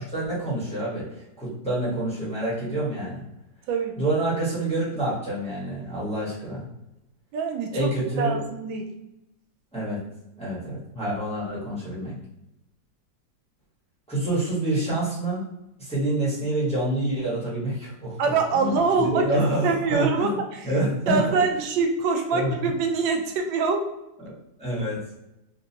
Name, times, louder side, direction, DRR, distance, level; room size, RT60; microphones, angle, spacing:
voice 1, 0.1-3.2 4.0-6.6 7.7-8.4 9.7-10.0 10.4-12.1 14.1-15.4 15.8-18.2 18.5-20.4 20.6-21.2 22.3-22.5 24.2-24.3 24.6-25.0, right 1 dB, 5° left, -9 dB, 1.2 m, -27 dB
voice 2, 7.3-7.9 8.2-8.9 18.2-19.3 19.6-20.7 21.1-23.9, right 4 dB, 90° right, 3 dB, 1.3 m, -24 dB
3.8 x 2.5 x 2.8 m, 0.90 s
omnidirectional pair, 2.0 m